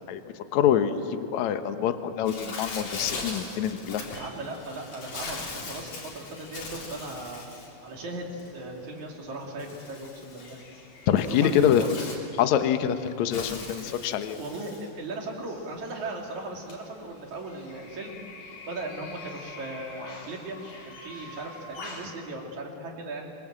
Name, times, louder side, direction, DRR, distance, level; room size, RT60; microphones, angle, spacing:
voice 1, 0.5-4.0 11.1-12.0 12.4-14.4, left 9 dB, 65° left, 8 dB, 2.2 m, -25 dB
Bird, 2.2-22.1, left 3 dB, 80° left, 5.5 m, -42 dB
voice 2, 4.1-7.5 7.8-10.6 11.3-11.9 14.4-18.2 18.7-20.6 20.9-23.3, right 2 dB, 55° right, 0 dB, 4.1 m, -38 dB
25.5 x 24.0 x 7.7 m, 2.8 s
omnidirectional pair, 4.1 m